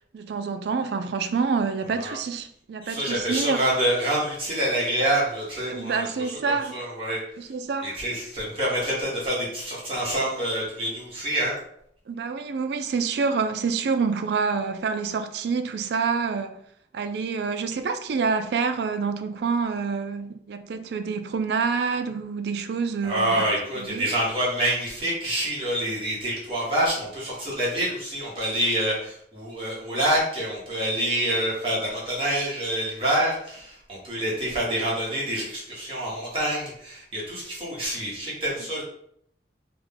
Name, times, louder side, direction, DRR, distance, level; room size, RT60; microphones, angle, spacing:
voice 1, 0.1-3.6 5.7-6.8 7.4-8.0 12.1-16.6 16.9-23.5 23.8-24.1, right 5 dB, 70° right, 0.3 m, -27 dB
voice 2, 2.8-6.1 6.7-7.2 7.8-11.5 23.0-38.8, right 1 dB, 30° right, 1.2 m, -27 dB
3.6 x 2.2 x 3.5 m
head